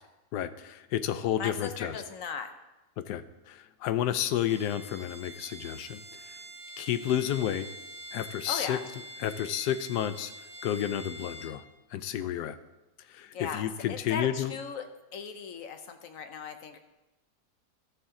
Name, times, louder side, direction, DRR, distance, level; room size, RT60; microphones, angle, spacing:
voice 1, 0.3-2.0 3.1-6.4 6.8-7.7 8.1-8.8 9.2-10.3 10.6-11.6 11.9-12.6 13.1-14.5, left 11 dB, 85° left, 12 dB, 1.2 m, -31 dB
voice 2, 1.4-2.5 8.5-8.8 13.3-14.9 15.1-16.8, left 6 dB, 65° left, 8 dB, 1.1 m, -37 dB
Bowed string instrument, 4.4-11.6, equal, 55° right, 1.9 m, -45 dB
13.0 x 6.7 x 3.7 m, 1.0 s
omnidirectional pair, 1.7 m